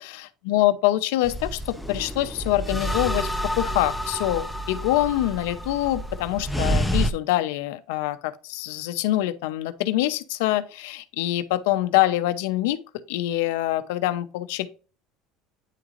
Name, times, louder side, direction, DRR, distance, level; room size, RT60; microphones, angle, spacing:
voice 1, 0.0-3.3 3.6-12.8 13.1-14.7, left 15 dB, 85° left, 0.7 m, -25 dB
sound 1, 1.2-7.1, equal, 5° left, 0.4 m, -28 dB
9.2 x 3.7 x 3.0 m
cardioid pair, 165°, 0 cm